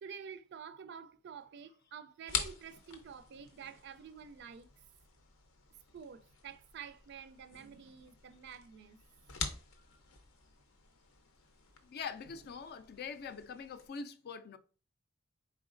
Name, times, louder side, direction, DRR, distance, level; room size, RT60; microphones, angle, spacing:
voice 1, 0.0-4.7 5.9-9.0 12.3-12.4, right 7 dB, 55° right, 0.4 m, -49 dB
sound 1, 2.3-13.9, left 6 dB, 80° left, 0.7 m, -46 dB
voice 2, 11.8-14.6, left 5 dB, 50° left, 0.4 m, -44 dB
4.2 x 3.9 x 2.5 m
head